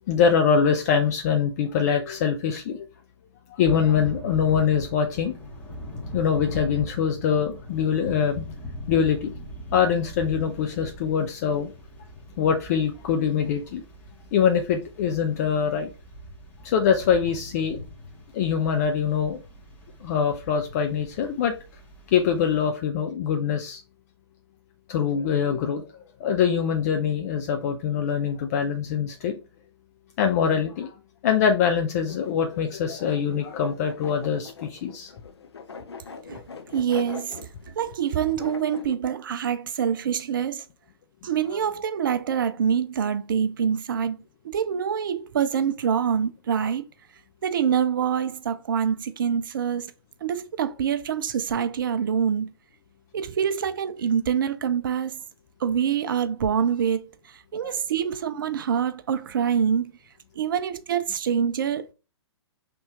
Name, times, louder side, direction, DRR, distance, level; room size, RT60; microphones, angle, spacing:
voice 1, 0.1-2.9 3.5-5.4 6.1-8.4 8.9-9.3 9.7-11.7 12.4-13.8 14.3-15.9 16.6-17.8 18.3-19.4 20.0-21.5 22.1-23.8 24.9-25.8 26.2-29.4 30.2-30.9 31.2-35.1 57.6-57.7, left 7 dB, 35° left, 0.6 m, -23 dB
Thunder / Rain, 3.6-22.7, left 1 dB, 10° left, 1.2 m, -41 dB
sound 1, 32.1-38.9, left 5 dB, 65° left, 0.9 m, -43 dB
voice 2, 36.7-37.4 37.8-40.7 41.2-44.2 44.4-46.8 47.4-49.9 50.2-52.5 53.1-55.2 55.6-59.9 60.4-61.9, right 8 dB, 50° right, 0.4 m, -25 dB
5.3 x 3.5 x 2.9 m
figure-of-eight pair, 120°, 15 cm